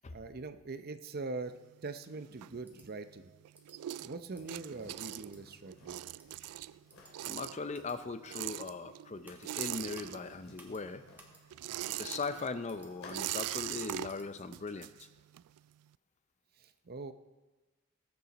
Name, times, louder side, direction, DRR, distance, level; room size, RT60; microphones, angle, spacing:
voice 1, 0.1-3.4 4.0-6.0 16.6-17.1, right 3 dB, 45° right, 10 dB, 0.6 m, -43 dB
sound 1, 1.5-3.1 3.4-10.6 10.9-15.6, right 14 dB, 85° right, 0.3 m, -42 dB
sound 2, 2.6-2.9 3.5-3.8 4.3-4.6 5.1-5.4 6.2-6.4 6.9-7.1 7.7-8.0 8.5-8.7 9.2-9.5 9.9-10.2 10.6-10.8 11.2-11.4 11.7-11.9 12.2-14.3, right 1 dB, 10° right, 1.7 m, -58 dB
sound 3, 4.3-13.6, left 2 dB, 65° left, 3.4 m, -59 dB
voice 2, 7.2-11.0 12.0-15.1, left 4 dB, 30° left, 11 dB, 0.5 m, -39 dB
20.0 x 8.7 x 4.1 m, 1.2 s
head